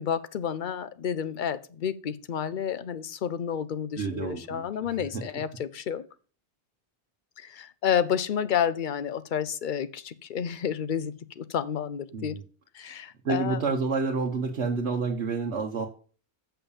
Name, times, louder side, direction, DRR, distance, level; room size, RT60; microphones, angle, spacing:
voice 1, 0.0-6.1 7.4-12.4 12.7-13.6, left 8 dB, 55° left, 0.7 m, -30 dB
voice 2, 4.0-5.2 12.1-12.4 13.2-15.9, right 4 dB, 80° right, 1.3 m, -29 dB
7.0 x 5.8 x 7.0 m
omnidirectional pair, 1.1 m